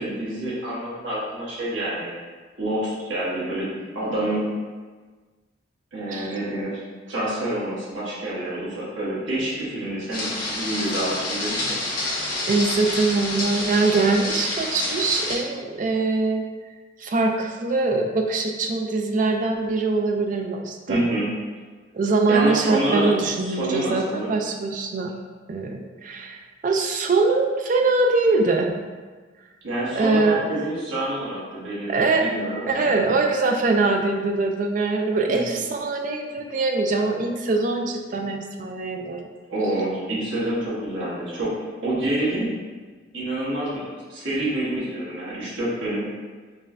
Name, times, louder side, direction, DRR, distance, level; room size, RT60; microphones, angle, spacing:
voice 1, 0.0-2.1 2.6-4.5 5.9-6.8 7.1-11.8 20.9-21.3 22.3-23.1 23.4-24.3 29.6-32.9 35.3-35.6 39.5-41.5 41.8-42.5 43.1-46.0, right 1 dB, 85° right, -8 dB, 1.1 m, -27 dB
sound 1, 10.1-15.3, left 2 dB, 45° left, 1.1 m, -28 dB
voice 2, 12.5-16.4 17.0-21.0 21.9-25.1 25.5-28.8 30.0-30.4 31.9-32.3 32.7-39.3, right 3 dB, 40° right, 3 dB, 0.3 m, -23 dB
5.4 x 2.1 x 2.5 m, 1.4 s
head